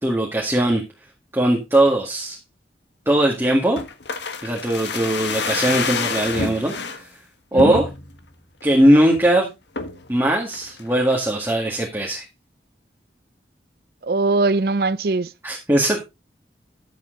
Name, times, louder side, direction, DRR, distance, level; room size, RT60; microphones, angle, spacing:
voice 1, 0.0-0.8 1.3-2.4 3.0-3.8 4.4-7.1 7.5-7.9 8.6-9.5 10.1-12.2 15.4-16.0, right 1 dB, 15° right, 1.8 m, -19 dB
sound 1, 3.8-7.0 7.6-8.2 8.6-8.7 8.9-9.3 9.8-10.1 10.5-11.2 11.5-11.6, left 4 dB, 80° left, 1.4 m, -28 dB
voice 2, 14.0-15.3, right 3 dB, 55° right, 0.5 m, -21 dB
11.5 x 7.4 x 3.8 m
head